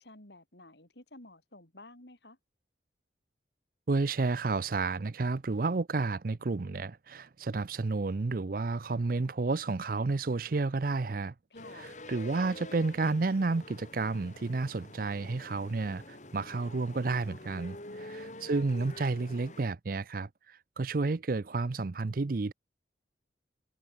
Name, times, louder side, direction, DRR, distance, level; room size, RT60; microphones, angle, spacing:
voice 1, 0.0-2.4 11.5-11.9 17.8-18.5, left 2 dB, 65° left, 4.3 m, -53 dB
voice 2, 3.9-11.3 11.8-22.5, right 3 dB, 50° right, 0.5 m, -31 dB
sound 1, 11.5-19.6, left 2 dB, 40° left, 2.9 m, -47 dB
head